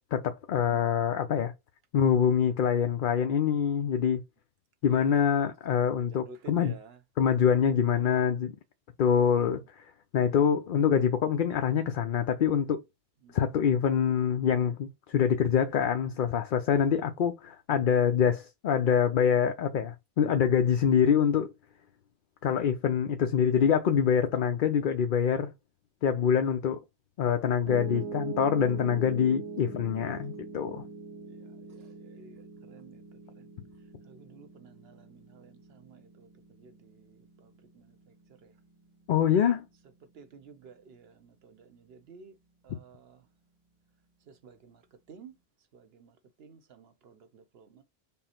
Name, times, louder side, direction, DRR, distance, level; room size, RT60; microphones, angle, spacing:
voice 1, 0.1-1.5 1.9-4.2 4.8-6.8 7.2-8.5 9.0-9.6 10.1-12.8 13.3-21.5 22.4-25.5 26.0-26.8 27.2-30.8 39.1-39.7, left 8 dB, 55° left, 0.7 m, -25 dB
voice 2, 0.7-1.0 4.9-5.2 6.0-7.0 7.8-8.1 9.4-9.7 10.4-10.6 13.2-13.4 27.7-28.0 31.3-33.5 34.0-38.1 38.4-38.5 40.1-42.4 42.6-43.3 44.3-44.8 45.1-45.3 45.7-47.8, right 5 dB, 65° right, 1.0 m, -53 dB
Piano, 27.7-39.8, right 4 dB, 30° right, 0.8 m, -43 dB
5.5 x 2.0 x 4.3 m
omnidirectional pair, 1.1 m